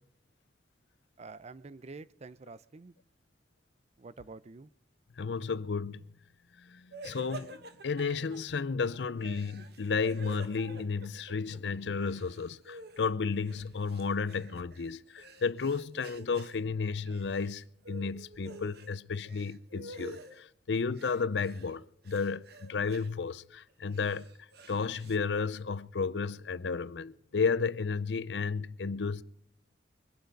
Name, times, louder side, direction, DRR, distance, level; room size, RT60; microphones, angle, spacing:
voice 1, 1.2-2.9 4.0-4.7, right 3 dB, 40° right, 0.5 m, -47 dB
voice 2, 5.2-6.0 6.7-7.6 7.8-24.3 24.7-29.2, left 5 dB, 80° left, 0.6 m, -33 dB
sound 1, 6.9-8.4 9.2-11.6 11.9-13.1 13.5-16.6 17.0-17.6 17.8-18.9 19.2-20.4 20.9-21.7 22.0-23.1 23.7-25.2, right 1 dB, 65° right, 1.3 m, -48 dB
23.5 x 11.5 x 5.2 m
head